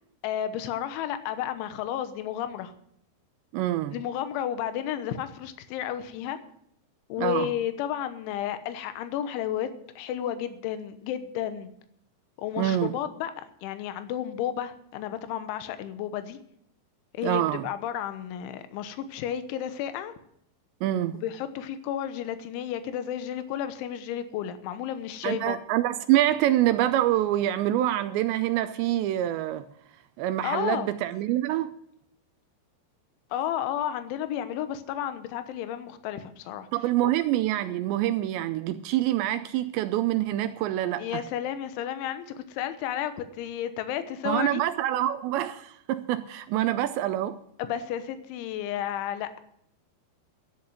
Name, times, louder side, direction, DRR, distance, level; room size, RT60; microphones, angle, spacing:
voice 1, 0.2-2.7 3.9-6.4 7.1-9.7 10.0-11.7 12.4-16.4 17.1-20.1 21.1-25.6 30.4-30.9 33.3-36.7 37.0-37.1 41.0-44.6 47.6-49.4, left 10 dB, 80° left, 3.4 m, -32 dB
voice 2, 3.5-4.0 7.2-7.5 12.6-12.9 17.2-17.6 20.8-21.2 25.2-29.7 30.2-31.7 36.7-41.0 44.2-47.4, right 13 dB, 80° right, 2.7 m, -26 dB
13.0 x 8.7 x 7.8 m
omnidirectional pair, 5.5 m